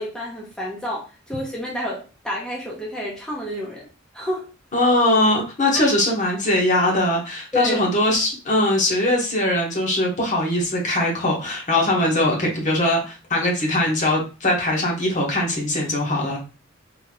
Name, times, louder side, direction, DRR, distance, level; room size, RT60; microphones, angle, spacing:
voice 1, 0.0-3.9 4.1-4.5 7.5-7.8, equal, 5° left, -5 dB, 0.8 m, -29 dB
voice 2, 4.7-16.4, left 1 dB, 40° left, -1 dB, 1.2 m, -21 dB
3.9 x 2.9 x 3.0 m, 0.32 s
head